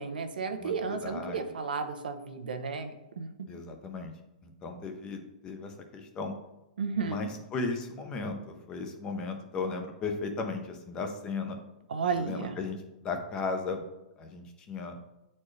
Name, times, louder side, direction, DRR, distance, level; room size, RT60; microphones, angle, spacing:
voice 1, 0.0-3.3 6.8-7.2 11.9-12.5, right 5 dB, 90° right, 7 dB, 0.9 m, -33 dB
voice 2, 0.6-1.5 3.5-4.1 4.4-6.3 7.0-11.6 12.2-13.8 14.2-14.9, left 4 dB, 15° left, 5 dB, 0.6 m, -36 dB
8.6 x 4.3 x 3.2 m, 0.97 s
hypercardioid pair, 165°, 5 cm